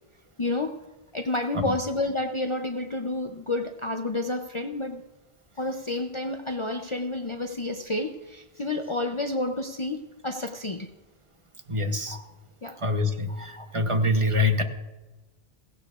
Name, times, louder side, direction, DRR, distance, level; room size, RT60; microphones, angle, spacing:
voice 1, 0.4-0.8 1.1-5.0 5.6-10.9 12.1-12.2 12.6-12.8 13.3-13.7, left 2 dB, 35° left, 4 dB, 0.6 m, -30 dB
voice 2, 11.7-12.2 12.8-14.6, left 2 dB, 30° right, 6 dB, 1.0 m, -25 dB
16.5 x 16.5 x 2.4 m, 1.2 s
omnidirectional pair, 1.1 m